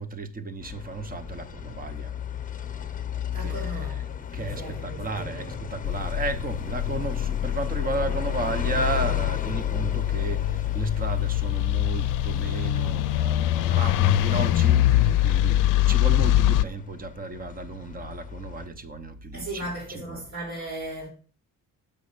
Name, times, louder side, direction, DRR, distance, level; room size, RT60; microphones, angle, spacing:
voice 1, 0.0-2.1 3.4-4.0 4.3-20.2, right 3 dB, 25° right, 0.9 m, -34 dB
sound 1, 0.6-18.7, left 8 dB, 25° left, 0.9 m, -37 dB
voice 2, 3.3-5.5 19.3-21.1, right 1 dB, 60° right, 3.2 m, -37 dB
sound 2, 5.8-16.6, left 13 dB, 70° left, 0.5 m, -24 dB
6.9 x 5.2 x 6.7 m
cardioid pair, 140°, 32 cm